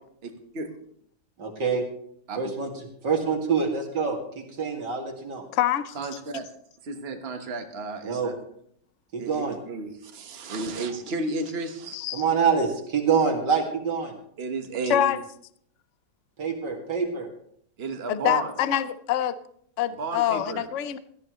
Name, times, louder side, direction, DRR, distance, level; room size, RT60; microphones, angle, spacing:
voice 1, 0.2-0.7 2.3-2.5 5.9-6.5 6.8-8.3 9.2-12.0 14.4-15.1 17.8-18.5 20.0-20.6, right 3 dB, 35° right, 5 dB, 1.4 m, -33 dB
voice 2, 1.4-1.8 2.4-2.7 3.0-5.4 8.0-8.3 9.1-9.6 12.1-14.1 16.4-17.3, right 5 dB, 65° right, 2 dB, 2.8 m, -26 dB
voice 3, 5.5-6.0 6.3-6.4 11.9-12.2 14.9-15.2 18.1-19.4 19.8-21.0, left 11 dB, 60° left, 13 dB, 0.8 m, -25 dB
17.0 x 14.0 x 3.1 m, 0.66 s
omnidirectional pair, 2.0 m